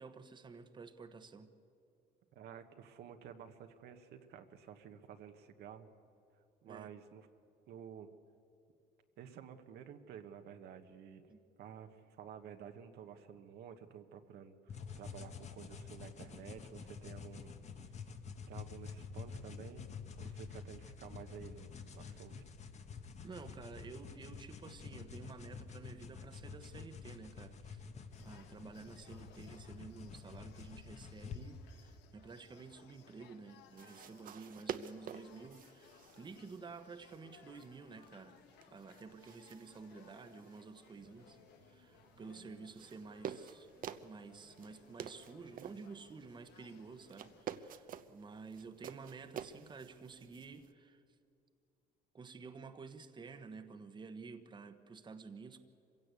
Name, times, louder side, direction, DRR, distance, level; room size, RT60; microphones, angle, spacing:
voice 1, 0.0-1.5 6.6-6.9 11.3-11.4 23.2-27.8 28.2-38.4 38.7-41.4 41.6-43.7 44.0-51.0 52.1-55.6, right 4 dB, 25° right, 8 dB, 1.1 m, -51 dB
voice 2, 2.3-5.9 6.6-7.3 7.7-8.2 9.2-11.3 11.6-17.5 17.9-18.0 18.5-19.8 20.2-22.4, right 8 dB, 75° right, 7 dB, 1.3 m, -52 dB
sound 1, 14.7-31.4, left 6 dB, 40° left, 1.4 m, -49 dB
sound 2, 28.1-47.4, left 8 dB, 85° left, 1.3 m, -64 dB
sound 3, 33.7-50.7, right 8 dB, 55° right, 0.8 m, -50 dB
25.0 x 16.5 x 8.3 m, 2.6 s
cardioid pair, 110°, 17 cm